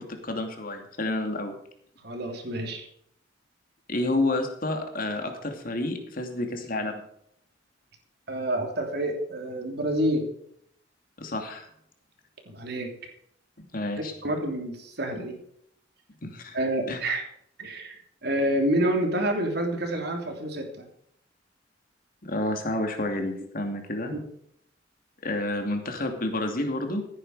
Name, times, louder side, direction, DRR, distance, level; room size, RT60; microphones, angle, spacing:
voice 1, 0.0-1.6 3.9-7.0 11.2-11.7 13.6-14.1 16.2-16.6 16.9-17.0 22.2-24.1 25.2-27.0, left 2 dB, 50° left, 5 dB, 2.7 m, -30 dB
voice 2, 2.0-2.9 8.3-10.3 12.5-12.9 14.2-15.3 16.5-17.2 17.6-18.0 18.2-20.9 24.1-24.2, right 1 dB, 60° right, 3 dB, 3.2 m, -28 dB
15.5 x 9.8 x 4.9 m, 0.70 s
head